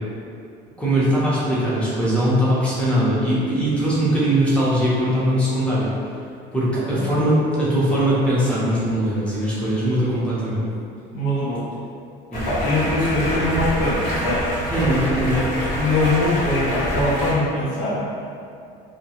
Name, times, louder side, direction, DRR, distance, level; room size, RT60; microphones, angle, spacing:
voice 1, 0.8-5.9 6.5-10.6 12.3-12.5 14.7-15.4, right 1 dB, 5° left, -9 dB, 0.9 m, -20 dB
voice 2, 11.1-11.6 12.5-14.5 15.8-18.1, left 1 dB, 80° left, -7 dB, 0.8 m, -22 dB
Stream, 12.3-17.3, equal, 50° left, 1.0 m, -25 dB
2.3 x 2.2 x 2.9 m, 2.4 s
supercardioid pair, 105°, 20 cm